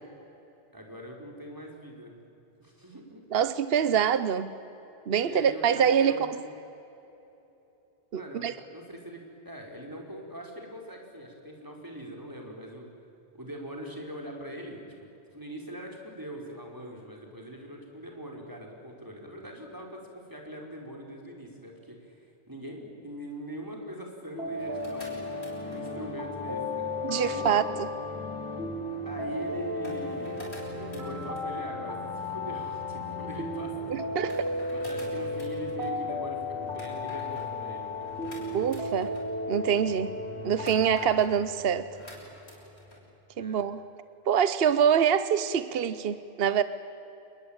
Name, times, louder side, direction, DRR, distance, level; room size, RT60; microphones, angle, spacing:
voice 1, 0.7-2.1 2.6-3.2 5.2-6.4 8.1-12.9 13.3-14.9 15.3-25.2 25.7-27.6 29.0-30.5 30.7-34.3 34.7-38.7 43.4-43.6, equal, 20° right, 0 dB, 4.8 m, -42 dB
voice 2, 3.3-4.5 5.1-6.3 8.1-8.5 27.0-27.6 33.9-34.3 38.5-39.1 39.5-40.1 40.4-41.9 43.4-43.8 44.3-46.6, right 8 dB, 65° right, 14 dB, 1.0 m, -25 dB
sound 1, 24.3-40.9, left 2 dB, 85° right, 5.0 m, -34 dB
sound 2, 24.5-43.0, left 2 dB, 80° left, 7.3 m, -49 dB
27.5 x 22.0 x 9.0 m, 3.0 s
omnidirectional pair, 1.1 m